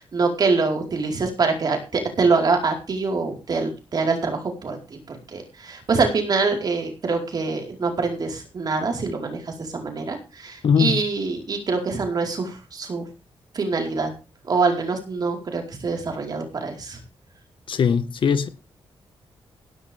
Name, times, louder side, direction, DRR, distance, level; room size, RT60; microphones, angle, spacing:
voice 1, 0.0-13.1 13.5-14.1 14.5-17.0, right 4 dB, 45° right, 4.6 m, -25 dB
voice 2, 10.6-11.0 17.7-18.5, left 6 dB, 60° left, 1.6 m, -20 dB
18.0 x 11.5 x 3.6 m
wide cardioid pair, 165°, 10 cm